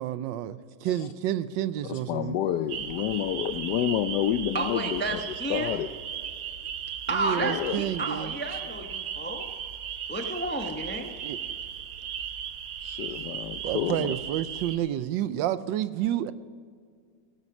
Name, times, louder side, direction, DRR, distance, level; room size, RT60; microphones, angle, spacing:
voice 1, 0.0-2.4 7.1-8.3 11.2-11.4 13.6-16.3, right 12 dB, 90° right, 14 dB, 1.3 m, -30 dB
voice 2, 1.8-5.9 7.4-7.8 12.8-14.1, left 11 dB, 75° left, 9 dB, 1.1 m, -29 dB
sound 1, 2.7-14.8, right 8 dB, 60° right, 1.1 m, -36 dB
voice 3, 4.5-5.7 7.1-9.5 10.1-11.1, right 2 dB, 15° left, 5 dB, 0.4 m, -31 dB
16.0 x 9.4 x 6.0 m, 2.1 s
omnidirectional pair, 2.0 m